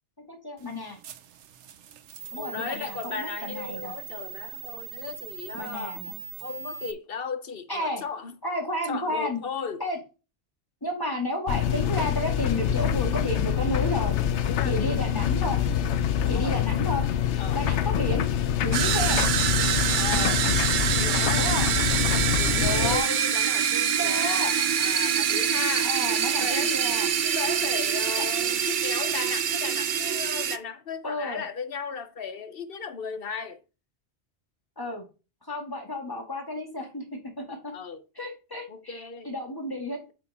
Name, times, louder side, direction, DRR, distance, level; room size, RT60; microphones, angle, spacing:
voice 1, 0.3-1.0 2.3-3.9 5.5-6.2 7.7-8.0 8.4-9.4 9.8-10.0 10.8-14.2 14.6-15.6 16.3-17.1 17.5-18.3 18.6-19.2 21.3-21.7 22.6-23.1 23.9-24.5 25.8-27.1 28.2-28.3 31.0-31.4 34.8-35.0 35.4-37.7 38.2-40.0, left 1 dB, 20° left, 2.2 m, -32 dB
sound 1, 0.6-6.9, right 10 dB, 80° right, 1.0 m, -41 dB
voice 2, 2.4-6.0 6.4-8.3 8.9-9.8 14.5-15.0 16.3-16.6 17.4-17.6 20.0-20.4 21.0-21.5 22.3-25.9 26.4-26.8 27.2-33.6 37.7-38.0 38.7-39.3, left 6 dB, 55° left, 1.1 m, -36 dB
sound 2, 11.5-23.0, left 9 dB, 75° left, 0.9 m, -25 dB
sound 3, 18.7-30.6, right 8 dB, 55° right, 0.7 m, -25 dB
8.3 x 4.8 x 4.2 m
omnidirectional pair, 1.2 m